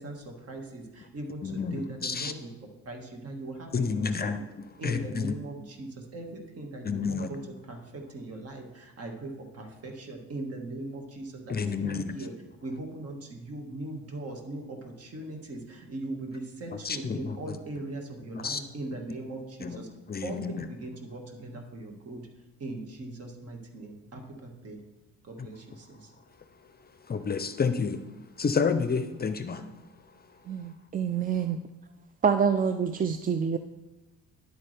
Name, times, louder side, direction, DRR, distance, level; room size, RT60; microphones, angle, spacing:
voice 1, 0.0-2.5 2.8-4.4 4.8-12.3 12.6-19.9 20.2-22.3 22.6-24.8 25.2-26.1, right 2 dB, 55° right, 3 dB, 1.8 m, -40 dB
voice 2, 1.4-2.3 3.7-4.4 4.8-5.3 6.8-7.3 11.5-12.2 16.8-17.6 18.3-18.6 19.6-19.8 20.1-20.5 27.1-28.0 28.4-29.6, left 5 dB, 30° left, 10 dB, 0.6 m, -29 dB
voice 3, 30.5-31.6 32.2-33.6, right 7 dB, 30° right, 9 dB, 0.4 m, -26 dB
10.5 x 8.4 x 3.4 m, 1.1 s
cardioid pair, 90°, 30 cm